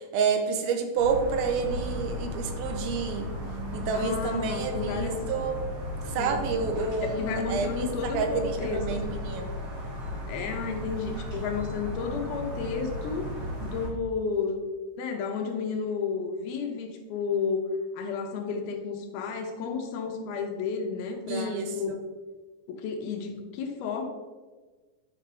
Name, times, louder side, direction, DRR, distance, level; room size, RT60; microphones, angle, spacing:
voice 1, 0.0-3.3 3.7-5.6 6.0-9.6 21.3-21.7, right 5 dB, 80° right, 5 dB, 2.6 m, -29 dB
sound 1, 1.0-13.9, left 1 dB, 40° right, 2.0 m, -35 dB
voice 2, 3.9-5.2 6.0-6.5 7.0-9.2 10.3-14.6 15.0-21.9 22.7-24.0, left 5 dB, 80° left, 4 dB, 2.7 m, -32 dB
9.7 x 5.8 x 3.4 m, 1.3 s
omnidirectional pair, 4.4 m